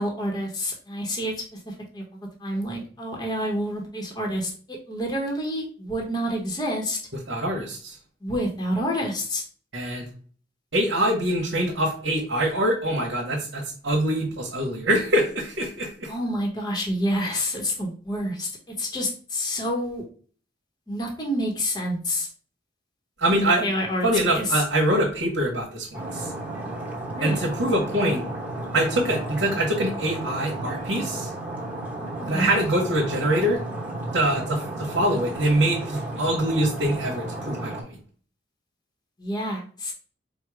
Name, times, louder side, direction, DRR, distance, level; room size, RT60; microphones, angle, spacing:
voice 1, 0.0-2.0 2.4-7.0 8.2-9.4 16.1-20.0 20.9-22.3 23.3-24.6 27.1-27.4 32.2-32.5 39.2-39.9, equal, 20° left, 0 dB, 0.8 m, -28 dB
voice 2, 7.3-8.0 9.7-10.1 10.7-16.1 23.2-23.6 24.0-26.3 27.2-28.2 28.7-31.3 32.3-33.6 34.1-38.0, right 1 dB, 80° right, -2 dB, 1.2 m, -24 dB
Stream, 25.9-37.8, right 2 dB, 10° right, 0.9 m, -33 dB
4.6 x 2.0 x 4.7 m, 0.42 s
head